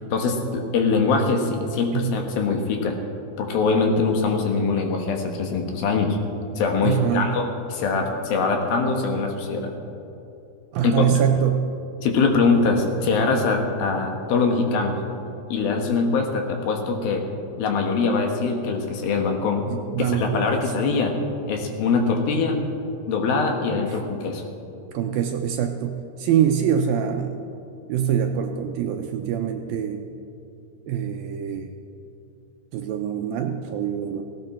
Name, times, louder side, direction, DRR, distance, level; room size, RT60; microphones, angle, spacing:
voice 1, 0.1-2.9 3.4-6.2 6.6-9.7 10.8-11.1 12.0-15.0 15.5-17.3 17.6-19.6 20.1-21.2 21.5-22.6 23.1-24.4, left 4 dB, 70° left, 3 dB, 3.0 m, -23 dB
voice 2, 1.9-2.2 6.8-7.4 10.7-11.7 19.7-20.7 22.3-22.5 23.9-24.0 24.9-27.4 27.9-30.0 30.9-31.7 32.7-34.2, right 8 dB, 80° right, 4 dB, 2.2 m, -24 dB
17.5 x 16.5 x 4.3 m, 2.7 s
omnidirectional pair, 4.7 m